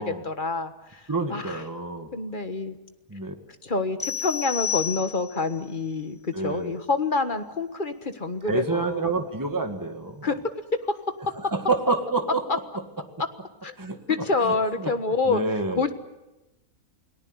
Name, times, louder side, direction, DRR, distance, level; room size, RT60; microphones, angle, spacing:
voice 1, 0.0-1.6 2.1-2.8 3.6-9.1 10.2-10.5 10.9-11.0 13.6-13.7 14.1-15.4 15.8-15.9, left 3 dB, 35° left, 9 dB, 1.6 m, -27 dB
voice 2, 1.1-2.1 3.1-3.3 6.3-6.8 8.5-10.3 11.5-12.4 13.8-14.0 14.4-14.9 15.3-15.8, right 3 dB, 15° right, 6 dB, 1.9 m, -28 dB
sound 1, 4.0-5.5, left 8 dB, 20° left, 1.2 m, -30 dB
29.0 x 18.5 x 8.0 m, 1.0 s
omnidirectional pair, 1.5 m